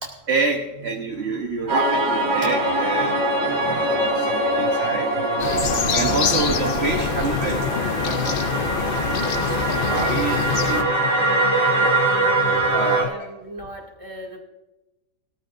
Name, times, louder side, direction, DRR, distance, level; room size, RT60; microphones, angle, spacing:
voice 1, 0.0-5.1 5.9-11.3 12.7-13.3, right 4 dB, 40° right, 2 dB, 1.2 m, -28 dB
sound 1, 1.7-13.0, right 2 dB, 70° right, 2.4 m, -23 dB
sound 2, 2.3-13.1, left 12 dB, 80° left, 1.2 m, -34 dB
sound 3, 5.4-10.8, left 6 dB, 60° left, 0.5 m, -25 dB
voice 2, 12.7-14.4, right 1 dB, 20° right, -1 dB, 2.4 m, -39 dB
18.0 x 14.0 x 2.6 m, 1.0 s
omnidirectional pair, 1.8 m